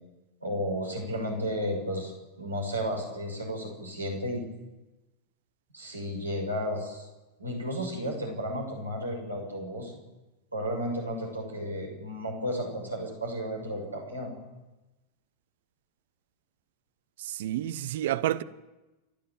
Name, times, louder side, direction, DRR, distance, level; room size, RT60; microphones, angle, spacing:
voice 1, 0.4-2.1 2.4-4.4 5.7-7.1 7.4-9.9 10.5-14.3, equal, 80° right, 6.6 m, -33 dB
voice 2, 17.2-18.4, right 13 dB, 55° right, 0.9 m, -29 dB
29.0 x 11.5 x 9.2 m
figure-of-eight pair, 90°, 0 cm